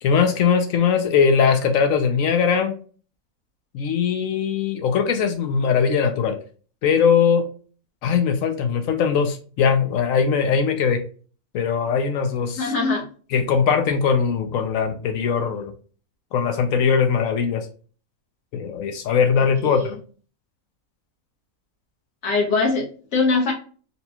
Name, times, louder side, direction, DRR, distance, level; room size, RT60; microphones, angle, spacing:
voice 1, 0.0-2.8 3.7-6.4 6.8-7.4 8.0-11.0 11.5-12.7 13.3-15.7 16.3-17.7 18.5-20.0, left 6 dB, 70° left, 6 dB, 0.9 m, -20 dB
voice 2, 12.6-13.0 19.6-19.9 22.2-23.5, left 3 dB, 55° left, 0 dB, 1.3 m, -22 dB
4.1 x 2.3 x 2.8 m, 0.40 s
omnidirectional pair, 1.6 m